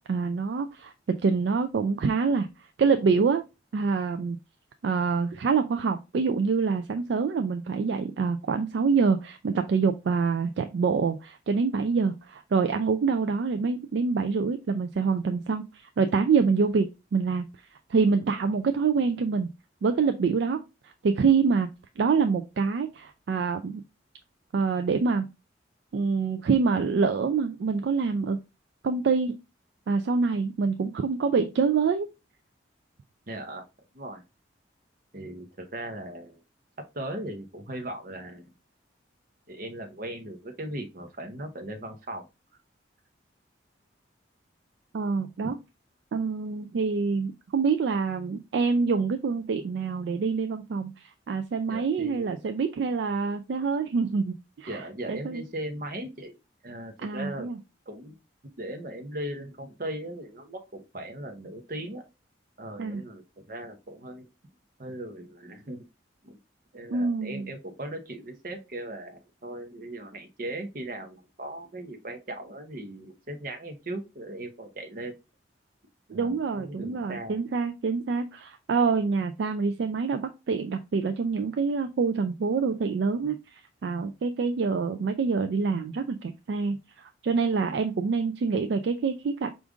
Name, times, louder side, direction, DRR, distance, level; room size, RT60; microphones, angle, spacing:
voice 1, 0.1-3.4 3.7-4.4 4.8-17.5 17.9-19.5 19.8-21.7 22.0-23.8 24.5-25.3 25.9-28.4 28.8-29.3 29.9-32.1 44.9-45.6 46.1-55.4 57.0-57.6 62.8-63.0 66.9-67.5 76.1-89.5, right 5 dB, 60° right, 7 dB, 0.3 m, -26 dB
voice 2, 33.3-33.6 33.9-34.2 35.1-36.4 36.9-38.5 39.5-42.3 51.7-52.4 54.7-56.3 56.6-57.5 57.9-58.2 58.6-62.0 62.6-64.3 64.8-65.8 66.2-66.4 66.7-75.1 76.1-77.4, right 1 dB, 45° right, 5 dB, 0.8 m, -38 dB
5.0 x 2.5 x 3.5 m, 0.27 s
head